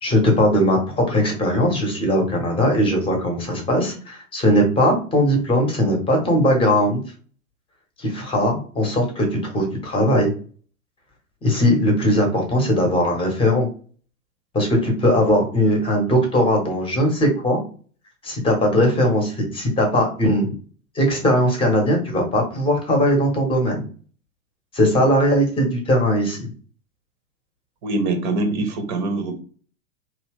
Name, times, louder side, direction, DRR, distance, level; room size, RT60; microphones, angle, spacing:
voice 1, 0.0-7.0 8.0-10.3 11.4-13.7 14.5-17.6 18.2-20.5 20.9-23.8 24.7-26.5, equal, 15° left, 2 dB, 0.9 m, -19 dB
voice 2, 27.8-29.4, right 2 dB, 35° right, 5 dB, 0.8 m, -23 dB
2.8 x 2.3 x 3.5 m, 0.40 s
figure-of-eight pair, 100°, 42 cm